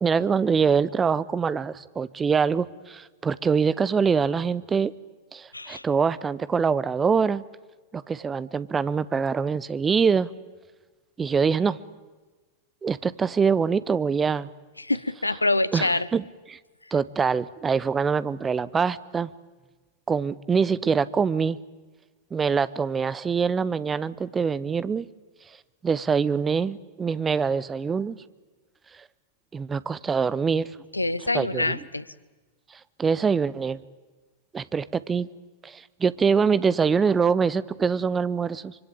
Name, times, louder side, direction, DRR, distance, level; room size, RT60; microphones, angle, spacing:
voice 1, 0.0-4.9 5.3-7.4 7.9-10.3 11.2-11.8 12.8-14.5 15.7-16.2 16.5-16.6 16.9-19.3 20.1-21.6 22.3-25.1 25.8-28.2 29.5-30.7 31.3-31.8 33.0-33.8 34.5-35.3 35.6-38.8, right 6 dB, 20° right, 17 dB, 0.8 m, -24 dB
voice 2, 5.5-5.8 14.8-16.1 16.9-17.0 30.9-32.1, left 2 dB, 85° left, 19 dB, 0.8 m, -26 dB
25.0 x 24.5 x 8.7 m, 1.3 s
figure-of-eight pair, 90°, 0 cm